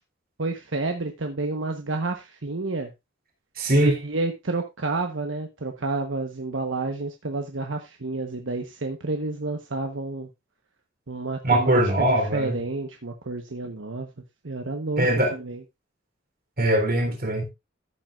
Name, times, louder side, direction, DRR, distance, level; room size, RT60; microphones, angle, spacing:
voice 1, 0.4-2.9 3.8-10.3 11.1-14.1 14.4-15.1 15.3-15.6, right 3 dB, 80° right, 1.2 m, -30 dB
voice 2, 3.6-4.0 11.4-12.6 15.0-15.3 16.6-17.4, right 1 dB, 50° right, 3.6 m, -21 dB
14.0 x 7.6 x 2.5 m
head